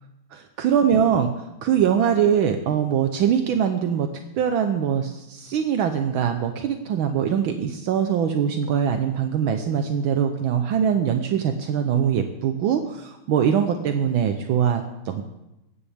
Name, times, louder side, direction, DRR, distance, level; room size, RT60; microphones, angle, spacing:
voice 1, 0.3-1.3 1.6-4.1 4.3-15.2, right 8 dB, 75° right, 6 dB, 1.5 m, -22 dB
22.5 x 9.2 x 3.4 m, 0.91 s
omnidirectional pair, 2.4 m